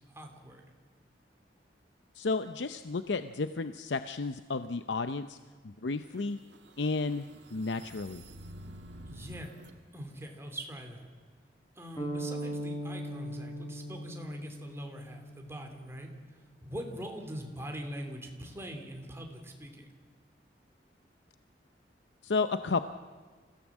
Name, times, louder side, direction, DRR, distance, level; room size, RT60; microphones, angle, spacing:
voice 1, 0.1-0.7 9.1-9.5 9.9-11.1 11.7-16.1 16.6-19.9, equal, 15° right, 3 dB, 2.9 m, -43 dB
voice 2, 2.2-5.4 5.8-6.4 6.8-7.3 7.5-8.2 22.2-22.8, left 3 dB, 80° left, 10 dB, 0.7 m, -32 dB
sound 1, 6.0-9.7, right 1 dB, 75° right, 1.9 m, -50 dB
sound 2, 12.0-15.9, right 1 dB, 20° left, 4.0 m, -39 dB
27.0 x 16.5 x 7.3 m, 1.5 s
head